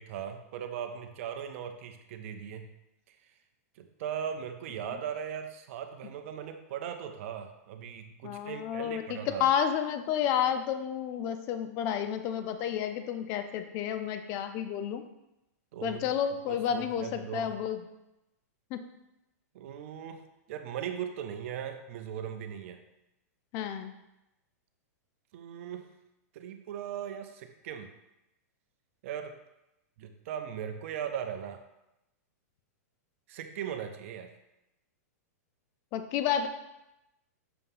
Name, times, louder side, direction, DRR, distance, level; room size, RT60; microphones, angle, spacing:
voice 1, 0.0-2.7 3.1-3.2 3.8-9.5 15.7-16.0 16.5-17.5 19.5-20.2 20.5-22.8 25.3-25.9 26.3-27.9 29.0-29.3 30.0-31.6 33.3-34.3, right 8 dB, 55° right, 7 dB, 0.6 m, -38 dB
voice 2, 8.2-15.0 15.8-17.8 18.7-18.8 23.5-23.9 35.9-36.5, left 9 dB, 35° left, 8 dB, 0.4 m, -31 dB
6.8 x 2.8 x 5.4 m, 0.90 s
hypercardioid pair, 150°, 9 cm